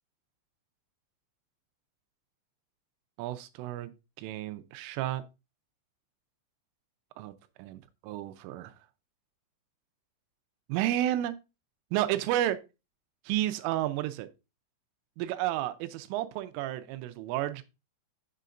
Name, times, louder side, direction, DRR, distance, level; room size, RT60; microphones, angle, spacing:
voice 1, 3.2-3.9 4.2-5.2 7.2-7.3 7.6-7.8 8.1-8.7 10.7-11.4 11.9-12.6 13.3-14.3 15.2-17.6, right 13 dB, 85° right, 3.1 m, -31 dB
8.3 x 6.8 x 2.5 m
omnidirectional pair, 5.8 m